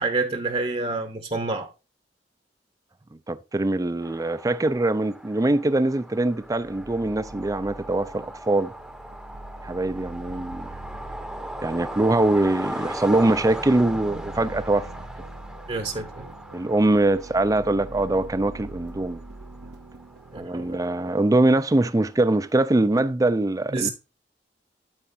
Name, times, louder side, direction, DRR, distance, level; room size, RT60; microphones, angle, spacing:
voice 1, 0.0-1.7 15.7-16.3 20.3-20.8 23.7-23.9, right 3 dB, 35° right, 0.9 m, -28 dB
voice 2, 3.3-8.7 9.6-10.7 11.6-14.9 16.5-19.2 20.3-23.9, right 2 dB, 20° right, 0.4 m, -23 dB
sound 1, 4.0-22.6, right 1 dB, 5° right, 0.8 m, -39 dB
sound 2, 6.4-20.4, right 2 dB, 75° right, 0.7 m, -43 dB
12.5 x 4.5 x 2.7 m
head